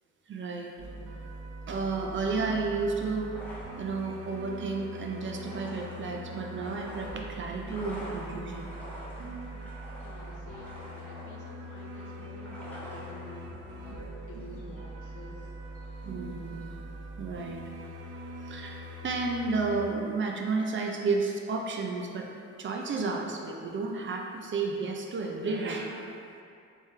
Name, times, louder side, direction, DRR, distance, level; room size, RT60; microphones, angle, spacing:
voice 1, 0.3-0.7 1.7-3.4 3.8-8.7 16.1-16.8 17.2-17.6 18.4-22.3 22.6-26.1, right 4 dB, 40° right, 1 dB, 0.5 m, -32 dB
sound 1, 0.8-19.8, right 1 dB, 85° right, 0.6 m, -42 dB
sound 2, 2.1-16.7, equal, 5° left, 1.0 m, -49 dB
voice 2, 10.0-15.6, left 2 dB, 75° left, -1 dB, 0.7 m, -49 dB
3.5 x 3.2 x 3.1 m, 2.4 s
cardioid pair, 90°, 30 cm